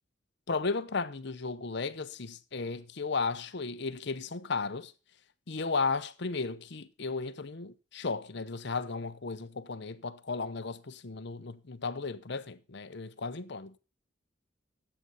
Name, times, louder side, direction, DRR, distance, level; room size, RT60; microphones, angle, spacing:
voice 1, 0.5-4.9 5.5-13.7, left 4 dB, 60° left, 0.8 m, -35 dB
11.0 x 8.0 x 5.5 m
head